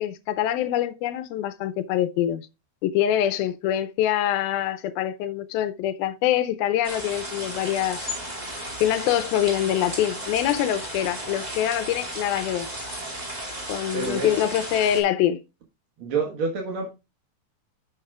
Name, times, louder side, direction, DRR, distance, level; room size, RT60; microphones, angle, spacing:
voice 1, 0.0-2.4 2.8-8.1 8.8-12.7 13.7-15.4, left 11 dB, 80° left, 2.4 m, -24 dB
sound 1, 6.8-15.0, equal, 15° right, 1.7 m, -34 dB
voice 2, 13.9-14.3 16.0-16.9, right 4 dB, 60° right, 1.5 m, -27 dB
10.5 x 7.2 x 2.3 m
omnidirectional pair, 4.4 m